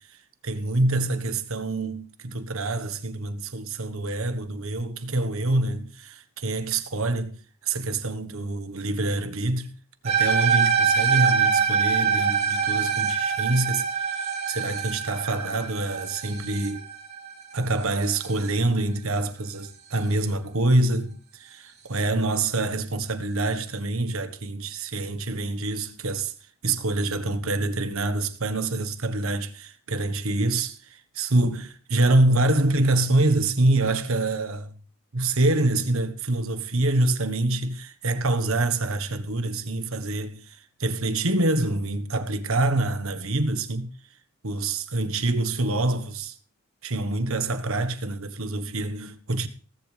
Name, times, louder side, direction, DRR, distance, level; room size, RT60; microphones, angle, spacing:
voice 1, 0.4-7.4 7.6-9.7 10.0-16.8 17.5-26.3 26.6-34.8 35.1-43.9 44.4-46.3 46.8-49.5, right 2 dB, 65° right, 1.4 m, -26 dB
sound 1, 10.1-18.5, right 6 dB, 30° right, 2.9 m, -24 dB
17.5 x 15.0 x 3.4 m
head